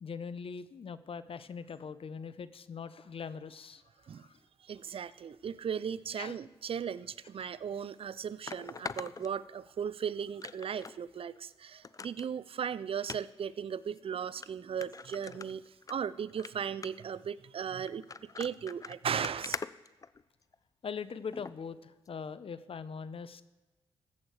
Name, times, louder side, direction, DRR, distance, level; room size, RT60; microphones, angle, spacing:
voice 1, 0.0-3.8 4.1-4.4 6.2-6.4 20.8-23.4, left 6 dB, 55° left, 14 dB, 0.8 m, -41 dB
voice 2, 4.6-15.6 15.9-18.1 18.4-19.6, right 7 dB, 55° right, 18 dB, 0.5 m, -37 dB
sound 1, 7.4-7.5 8.5-9.9 10.4-11.0 11.3-11.4 11.8-12.3 13.0-13.2 13.9-14.0 14.4-14.5 14.8-15.9 16.3-16.5 16.8-17.1 17.9-20.5 21.3-21.5 22.1-22.2, left 4 dB, 30° left, 0.4 m, -42 dB
14.5 x 8.5 x 4.8 m, 1.2 s
cardioid pair, 60°, 11 cm